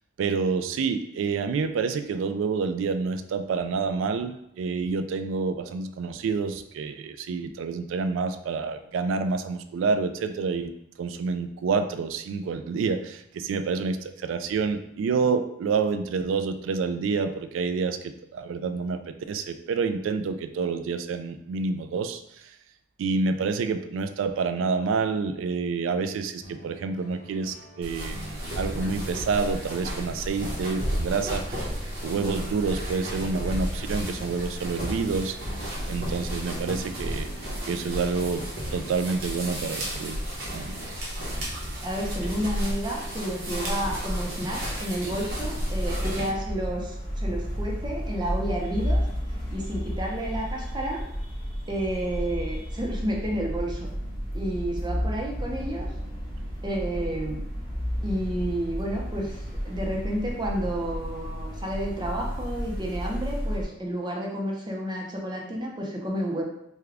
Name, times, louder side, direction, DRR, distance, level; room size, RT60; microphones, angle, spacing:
voice 1, 0.2-10.7 11.0-19.0 19.3-22.6 23.0-31.7 32.0-37.3 37.6-38.4 38.7-40.7, right 4 dB, 85° right, 9 dB, 0.3 m, -28 dB
sound 1, 26.4-41.0, equal, 40° left, 0.5 m, -46 dB
sound 2, 27.8-46.3, equal, 50° right, 0.9 m, -32 dB
voice 2, 41.8-49.0 49.5-51.0 51.7-53.9 54.3-55.9 56.6-57.4 58.0-66.4, right 1 dB, 25° right, -1 dB, 0.6 m, -31 dB
sound 3, 45.3-63.6, equal, 25° left, 1.2 m, -32 dB
3.5 x 2.2 x 3.4 m, 0.80 s
head